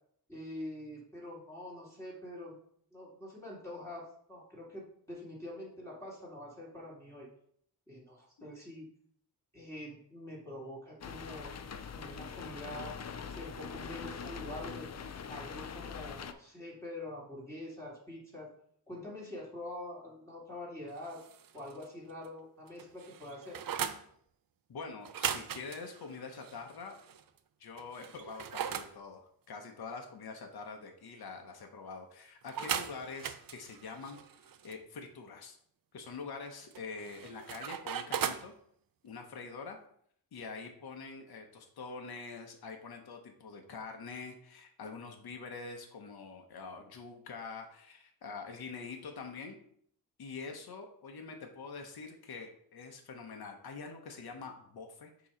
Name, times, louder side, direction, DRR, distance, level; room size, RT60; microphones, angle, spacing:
voice 1, 0.3-2.6 2.9-7.3 7.9-8.9 9.5-11.5 11.8-14.9 15.3-18.5 18.9-21.2 21.5-23.6, left 1 dB, 5° left, -7 dB, 2.2 m, -45 dB
sound 1, 11.0-16.3, left 6 dB, 45° left, 0.5 m, -43 dB
sound 2, 21.0-21.9 22.2-22.3 22.7-24.0 25.0-27.2 27.8-28.9 32.5-34.7 36.7-38.5, right 8 dB, 60° right, 0.6 m, -39 dB
voice 2, 24.7-26.9 27.6-34.2 34.6-35.6 35.9-38.5 39.0-39.8 40.3-49.6 50.2-55.3, left 4 dB, 75° left, 3 dB, 1.0 m, -45 dB
6.9 x 3.0 x 5.0 m, 0.65 s
cardioid pair, 80°, 38 cm